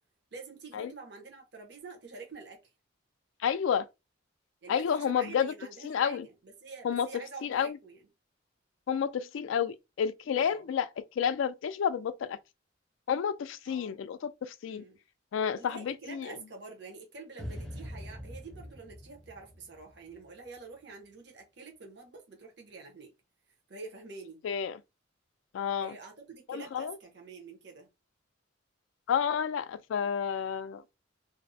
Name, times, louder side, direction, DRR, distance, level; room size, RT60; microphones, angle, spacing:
voice 1, 0.3-2.6 4.6-8.0 10.4-10.6 13.7-14.0 14.6-15.0 15.6-23.1 23.7-24.4 25.8-27.9, right 4 dB, 55° right, 0.8 m, -47 dB
voice 2, 3.4-3.9 4.7-5.5 5.8-6.3 6.8-7.8 8.9-10.9 11.2-12.4 13.1-14.8 15.3-16.4 24.4-24.8 25.5-26.0 26.5-27.0 29.1-30.8, left 7 dB, 75° left, 0.3 m, -30 dB
sound 1, 17.4-20.6, equal, ahead, 0.5 m, -44 dB
2.5 x 2.0 x 2.6 m
head